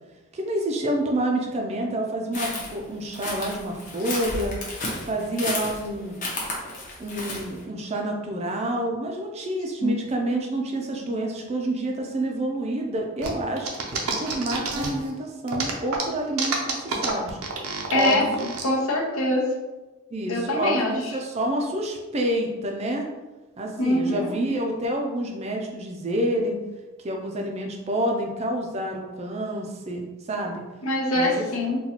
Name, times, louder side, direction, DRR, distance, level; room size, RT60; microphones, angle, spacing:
voice 1, 0.3-4.6 5.1-6.1 7.0-13.7 14.2-17.4 17.9-18.5 20.1-23.1 23.6-26.6 27.0-30.6 31.1-31.5, right 1 dB, 30° right, 1 dB, 0.4 m, -28 dB
sound 1, 2.3-7.6, left 2 dB, 35° left, 0.7 m, -32 dB
sound 2, 13.2-15.1 15.5-18.6, right 4 dB, 80° right, 0.6 m, -29 dB
voice 2, 17.9-18.2 18.6-19.4 20.3-20.9 23.8-24.3 30.8-31.8, left 1 dB, 75° left, -2 dB, 0.8 m, -23 dB
4.0 x 2.2 x 2.8 m, 1.1 s
head